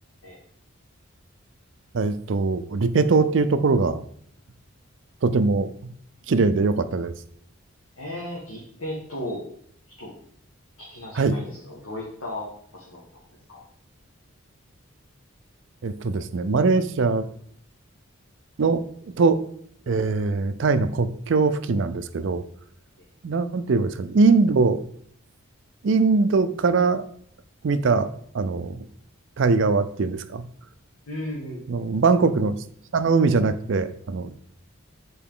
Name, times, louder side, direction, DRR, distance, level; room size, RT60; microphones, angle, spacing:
voice 1, 1.9-4.0 5.2-5.7 6.3-7.1 11.1-11.3 15.8-17.3 18.6-18.8 19.2-19.4 19.9-22.4 23.2-24.8 25.8-27.0 27.6-28.1 28.3-28.8 29.4-30.4 31.7-32.5 32.9-34.3, right 4 dB, 60° right, 12 dB, 0.4 m, -21 dB
voice 2, 8.0-9.4 10.0-10.1 10.8-13.2 13.5-13.6 31.1-31.8, left 1 dB, 80° left, -4 dB, 1.4 m, -35 dB
7.0 x 4.2 x 3.6 m, 0.63 s
head